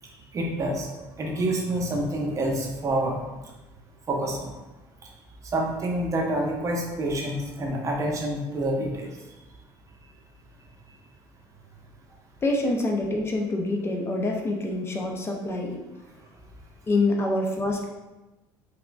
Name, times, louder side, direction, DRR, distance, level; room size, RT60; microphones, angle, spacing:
voice 1, 0.3-0.9 1.2-3.2 4.1-4.5 5.5-9.1 17.2-17.3, right 1 dB, 35° right, 0 dB, 0.8 m, -27 dB
voice 2, 12.4-15.8 16.9-17.9, left 2 dB, 25° left, 1 dB, 0.5 m, -26 dB
3.5 x 3.4 x 2.3 m, 1.1 s
supercardioid pair, 105°, 10 cm